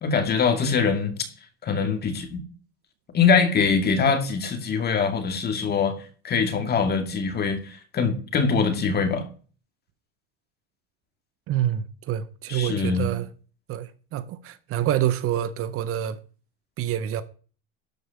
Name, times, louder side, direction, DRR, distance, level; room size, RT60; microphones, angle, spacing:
voice 1, 0.0-1.2 1.6-2.4 3.1-5.9 6.2-9.2 12.5-13.1, left 5 dB, 30° left, 2.2 m, -23 dB
voice 2, 11.5-13.3 13.7-16.2 16.8-17.2, right 11 dB, 45° right, 0.8 m, -27 dB
12.0 x 4.7 x 7.0 m
supercardioid pair, 125°, 31 cm